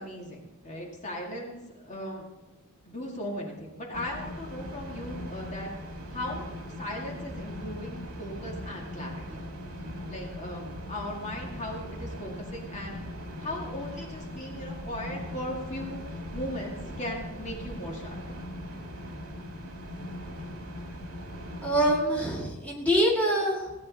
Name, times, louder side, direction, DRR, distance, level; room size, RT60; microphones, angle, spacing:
voice 1, 0.0-2.3 2.9-5.7 6.1-6.5 6.8-9.4 10.1-13.0 13.4-16.0 16.3-18.4, left 1 dB, 35° left, -1 dB, 2.2 m, -38 dB
sound 1, 3.9-22.0, equal, 70° right, 2.1 m, -40 dB
voice 2, 21.6-23.7, equal, 5° left, -4 dB, 2.1 m, -25 dB
17.0 x 9.5 x 4.2 m, 1.1 s
head